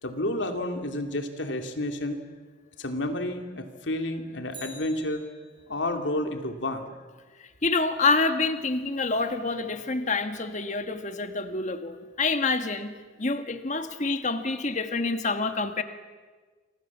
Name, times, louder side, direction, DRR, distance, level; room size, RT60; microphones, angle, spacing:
voice 1, 0.0-2.2 2.8-5.2 5.7-6.9, left 1 dB, 80° left, 5 dB, 2.8 m, -30 dB
Bicycle, 4.4-5.9 14.2-14.3, right 2 dB, 25° right, 7.5 m, -47 dB
voice 2, 7.6-15.8, left 3 dB, 40° left, 8 dB, 1.6 m, -27 dB
29.0 x 24.5 x 7.4 m, 1.4 s
head